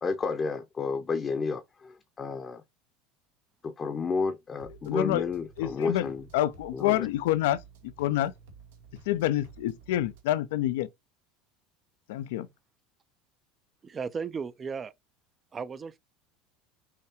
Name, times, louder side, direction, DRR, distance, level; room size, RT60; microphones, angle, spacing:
voice 1, 0.0-2.6 3.6-6.2 6.7-7.1, left 4 dB, 30° left, 0.7 m, -31 dB
sound 1, 4.6-10.2, right 5 dB, 75° right, 1.1 m, -53 dB
voice 2, 4.9-5.2 5.6-7.6 8.0-8.3 9.1-10.9 12.1-12.5, left 14 dB, 70° left, 0.4 m, -27 dB
voice 3, 13.8-14.9 15.5-16.0, right 5 dB, 30° right, 0.5 m, -35 dB
5.7 x 3.1 x 2.9 m
hypercardioid pair, 75°, 0 cm